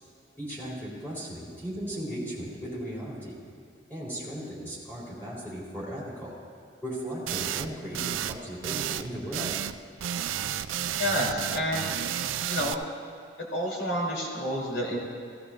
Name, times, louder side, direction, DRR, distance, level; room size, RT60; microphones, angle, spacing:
voice 1, 0.4-3.4 3.9-6.4 6.8-9.5, equal, 10° left, -7 dB, 3.6 m, -37 dB
sound 1, 7.3-7.7 7.9-8.4 8.6-9.8 10.0-12.7, right 10 dB, 90° right, 0.4 m, -31 dB
voice 2, 11.0-12.8 13.5-15.0, equal, 65° left, -5 dB, 3.1 m, -30 dB
15.5 x 15.0 x 2.5 m, 2.3 s
head